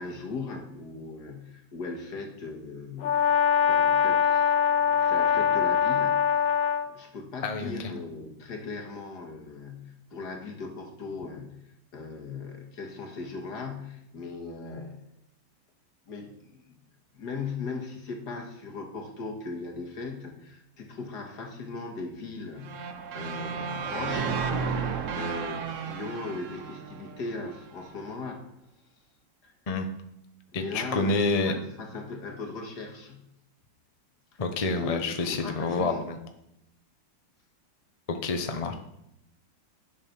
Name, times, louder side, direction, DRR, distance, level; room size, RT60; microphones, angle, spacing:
voice 1, 0.0-3.4 3.6-4.5 4.9-6.5 6.9-11.6 11.9-15.1 16.1-16.8 17.1-24.5 24.9-28.4 29.4-29.5 30.5-33.3 34.7-36.1, left 3 dB, 55° left, 3 dB, 2.1 m, -38 dB
Brass instrument, 3.0-6.9, left 7 dB, 90° left, 1.6 m, -23 dB
sound 1, 22.6-27.7, right 5 dB, 60° right, 0.8 m, -33 dB
voice 2, 30.5-31.5 34.4-36.2 38.1-38.7, left 3 dB, 40° left, 5 dB, 0.5 m, -28 dB
11.0 x 6.8 x 5.9 m, 0.81 s
omnidirectional pair, 2.2 m